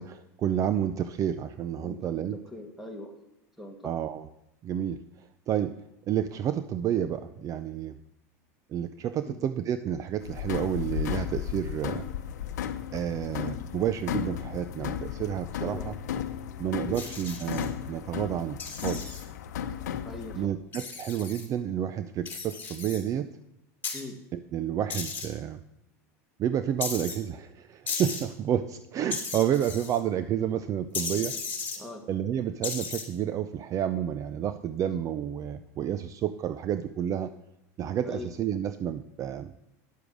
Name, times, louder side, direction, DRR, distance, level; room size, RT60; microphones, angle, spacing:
voice 1, 0.0-2.4 3.8-4.3 4.6-5.0 5.5-5.8 6.1-8.0 8.7-12.0 12.9-15.9 16.6-19.2 20.3-23.3 24.3-25.6 26.4-31.4 32.1-37.3 37.8-39.5, right 10 dB, 40° right, 12 dB, 0.5 m, -30 dB
voice 2, 1.8-3.1 3.6-4.0 9.2-9.4 15.6-15.9 16.8-17.0 20.0-20.5 23.9-24.2 31.8-32.0 38.0-38.3, left 2 dB, ahead, 3 dB, 2.1 m, -41 dB
sound 1, 10.2-20.5, left 9 dB, 85° left, 0.8 m, -35 dB
sound 2, 16.9-17.7 18.6-19.2 20.7-21.5 22.2-23.0 23.8-24.0 24.9-25.3 26.8-27.2 27.9-28.2 29.1-30.0 30.9-31.8 32.6-33.0, left 5 dB, 20° left, 3.1 m, -35 dB
10.0 x 6.9 x 6.2 m, 0.83 s
supercardioid pair, 110°, 9 cm